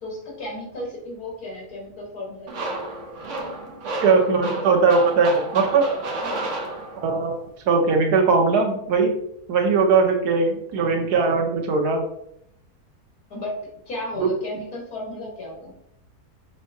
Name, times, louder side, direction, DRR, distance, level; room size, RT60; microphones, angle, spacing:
voice 1, 0.0-2.7 6.2-6.5 13.3-13.6 13.9-15.7, left 1 dB, 75° left, -2 dB, 1.9 m, -34 dB
sound 1, 2.5-7.3, right 2 dB, 55° right, 1.0 m, -31 dB
voice 2, 4.0-5.8 7.0-7.4 7.7-9.1 9.5-12.0 14.2-14.3, right 4 dB, 85° right, 2 dB, 1.3 m, -19 dB
5.5 x 3.3 x 2.7 m, 0.74 s
omnidirectional pair, 1.7 m